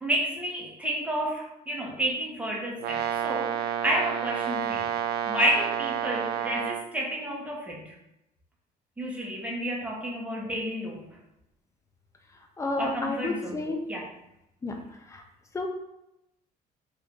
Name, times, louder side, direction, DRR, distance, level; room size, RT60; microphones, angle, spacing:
voice 1, 0.0-4.9 5.3-7.9 9.0-11.1 12.8-14.1, equal, 10° right, -2 dB, 1.0 m, -30 dB
Brass instrument, 2.8-6.9, right 9 dB, 80° right, 0.4 m, -30 dB
voice 2, 12.6-13.8 14.6-14.7 15.5-15.7, left 2 dB, 15° left, 3 dB, 0.6 m, -30 dB
3.2 x 2.7 x 3.6 m, 0.87 s
cardioid pair, 110°, 17 cm